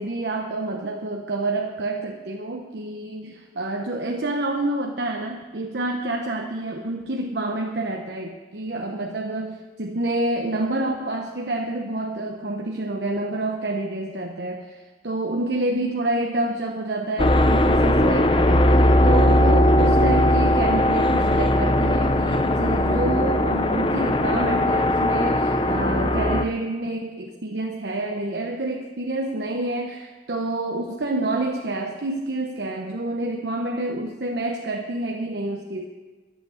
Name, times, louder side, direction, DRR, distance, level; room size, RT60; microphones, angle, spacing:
voice 1, 0.0-35.8, right 2 dB, 70° right, 2 dB, 0.9 m, -28 dB
sound 1, 17.2-26.4, left 1 dB, 30° left, 0.5 m, -19 dB
11.0 x 8.1 x 7.8 m, 1.3 s
head